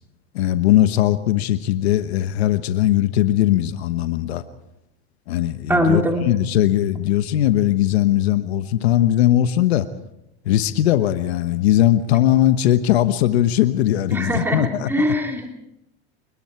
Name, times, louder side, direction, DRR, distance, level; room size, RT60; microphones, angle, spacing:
voice 1, 0.3-4.4 5.3-9.9 10.4-15.0, left 13 dB, 85° left, 10 dB, 1.2 m, -19 dB
voice 2, 5.7-6.3 14.1-15.5, equal, 5° right, 2 dB, 3.2 m, -21 dB
28.0 x 20.5 x 4.6 m, 0.86 s
supercardioid pair, 105°, 31 cm